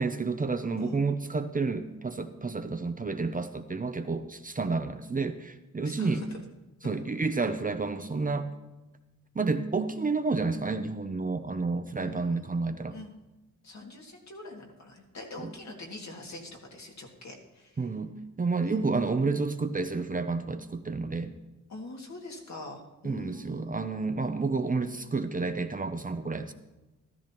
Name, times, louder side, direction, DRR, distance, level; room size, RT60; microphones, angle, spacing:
voice 1, 0.0-6.3 6.8-8.5 9.3-13.0 15.4-15.5 17.8-21.3 23.0-26.5, right 3 dB, 25° right, 8 dB, 0.6 m, -30 dB
voice 2, 5.8-6.3 6.8-7.0 12.0-13.1 13.6-17.7 18.6-18.8 21.7-24.0, left 2 dB, 60° left, 0 dB, 2.3 m, -44 dB
14.0 x 13.5 x 3.0 m, 1.1 s
wide cardioid pair, 120°, 31 cm